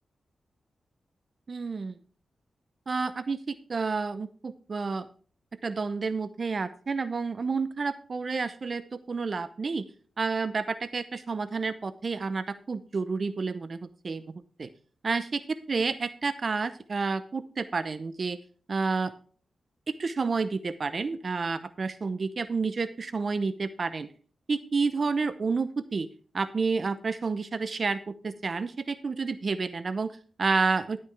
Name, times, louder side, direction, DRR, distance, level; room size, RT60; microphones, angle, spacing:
voice 1, 1.5-1.9 2.9-5.1 5.6-9.8 10.2-14.3 14.6-14.7 15.0-18.4 18.7-19.1 19.9-24.1 24.5-26.1 26.3-30.1 30.4-31.0, right 4 dB, 50° right, 14 dB, 0.7 m, -30 dB
12.0 x 8.7 x 3.3 m, 0.42 s
cardioid pair, 75°, 0 cm